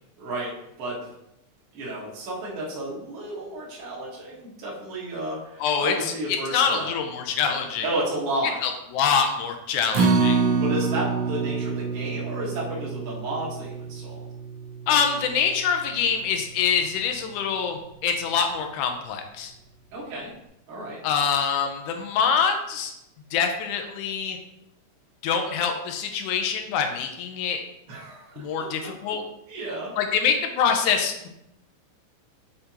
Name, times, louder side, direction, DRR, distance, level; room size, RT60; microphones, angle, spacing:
voice 1, 0.2-0.5 0.8-1.0 1.7-6.9 7.8-8.6 10.6-14.2 19.9-20.3 20.7-21.0 27.9-28.5 29.1-29.2 29.5-30.0, right 1 dB, 55° right, -6 dB, 2.2 m, -32 dB
voice 2, 5.6-7.9 8.6-10.4 14.9-19.5 21.0-22.9 23.3-24.4 25.2-27.6 28.4-29.2 30.0-31.3, left 6 dB, 90° left, 5 dB, 2.2 m, -25 dB
Acoustic guitar, 9.9-16.2 16.6-16.7 17.2-17.3, right 4 dB, 80° right, 1.0 m, -27 dB
6.6 x 5.0 x 2.9 m, 0.84 s
omnidirectional pair, 3.4 m